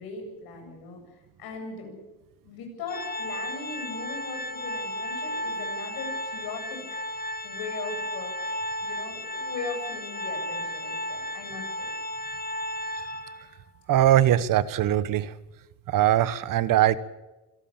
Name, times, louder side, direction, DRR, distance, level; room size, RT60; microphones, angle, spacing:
voice 1, 0.0-2.0 2.4-6.8 7.1-11.9, left 4 dB, 85° left, 3 dB, 7.9 m, -39 dB
Organ, 2.9-13.6, left 1 dB, 25° left, 1.5 m, -34 dB
voice 2, 13.9-15.3 15.9-17.0, right 12 dB, 65° right, 15 dB, 1.2 m, -21 dB
25.5 x 13.0 x 8.9 m, 1.1 s
cardioid pair, 130°, 35 cm